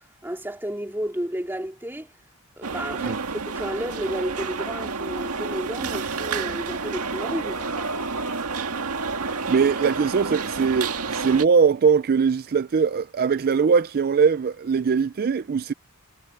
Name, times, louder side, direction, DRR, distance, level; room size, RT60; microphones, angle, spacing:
voice 1, 0.2-2.1 2.6-7.7, equal, 10° right, 2.9 m, -32 dB
sound 1, 2.6-11.4, right 4 dB, 85° right, 1.9 m, -30 dB
voice 2, 9.5-15.7, right 6 dB, 45° right, 0.4 m, -21 dB
head